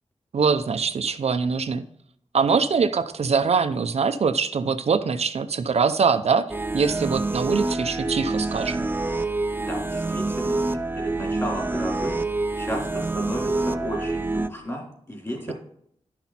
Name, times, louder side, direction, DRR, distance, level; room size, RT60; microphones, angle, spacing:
voice 1, 0.3-1.8 2.3-6.5 6.7-8.9 15.5-15.6, right 5 dB, 65° right, 9 dB, 0.5 m, -23 dB
sound 1, 6.5-14.5, right 2 dB, 20° right, 0.4 m, -27 dB
voice 2, 9.6-12.2 12.6-15.5, equal, 25° left, -1 dB, 3.3 m, -33 dB
11.5 x 6.0 x 4.2 m, 0.68 s
wide cardioid pair, 115°, 11 cm